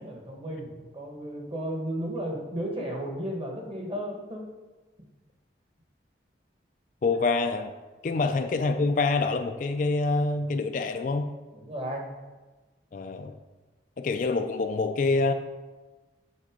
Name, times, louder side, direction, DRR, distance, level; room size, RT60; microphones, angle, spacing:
voice 1, 0.0-4.5 7.2-7.3 8.1-8.2 11.5-12.1, equal, 30° right, 0 dB, 1.2 m, -34 dB
voice 2, 7.0-7.7 8.0-11.3 12.9-13.4 14.0-15.3, left 3 dB, 45° left, 7 dB, 0.3 m, -26 dB
7.5 x 4.0 x 5.0 m, 1.2 s
head